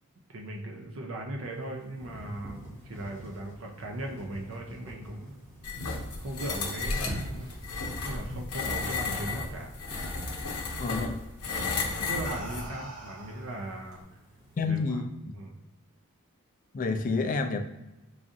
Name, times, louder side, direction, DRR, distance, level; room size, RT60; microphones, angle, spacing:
voice 1, 0.3-5.4 6.2-7.6 8.0-9.7 11.5-14.0 14.6-15.0 15.3-15.6, right 1 dB, 60° right, 1 dB, 0.5 m, -38 dB
sound 1, 1.4-14.7, equal, 15° right, 0.8 m, -46 dB
sound 2, 5.6-12.7, left 3 dB, 90° left, 0.7 m, -33 dB
sound 3, 6.1-9.0 9.4-9.8 11.1-11.3 11.9-14.0, right 2 dB, 85° right, 0.9 m, -46 dB
voice 2, 10.8-11.2 14.6-15.0 16.7-17.6, left 4 dB, 40° left, 6 dB, 0.3 m, -28 dB
4.7 x 2.4 x 2.7 m, 1.0 s
head